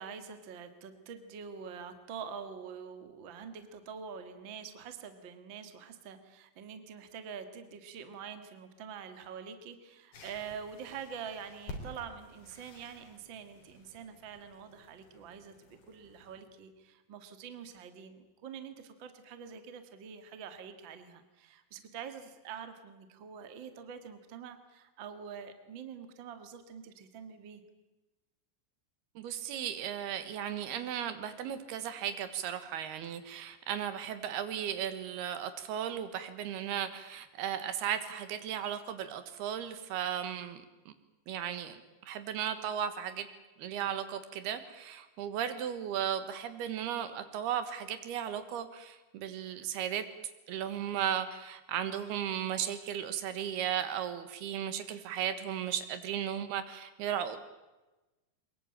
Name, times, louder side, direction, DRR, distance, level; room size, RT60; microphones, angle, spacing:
voice 1, 0.0-27.6, right 7 dB, 40° right, 9 dB, 1.8 m, -45 dB
sound 1, 10.1-16.4, left 2 dB, 80° left, 5.6 m, -51 dB
voice 2, 29.2-40.9 41.3-43.3 43.6-50.1 50.5-57.4, right 9 dB, 80° right, 11 dB, 3.4 m, -36 dB
23.0 x 21.5 x 8.9 m, 1.1 s
omnidirectional pair, 4.6 m